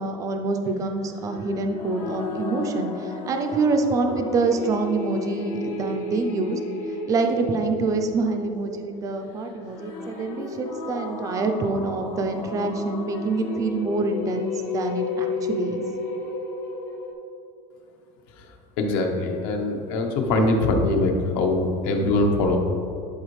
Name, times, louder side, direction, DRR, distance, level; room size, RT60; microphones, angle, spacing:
voice 1, 0.0-6.6 6.9-15.8, right 3 dB, 15° right, 5 dB, 0.4 m, -26 dB
sound 1, 1.1-17.1, left 3 dB, 45° left, 1.1 m, -33 dB
voice 2, 18.8-22.6, left 2 dB, 65° left, 2 dB, 1.0 m, -22 dB
10.5 x 4.4 x 3.2 m, 2.7 s
cardioid pair, 170°, 19 cm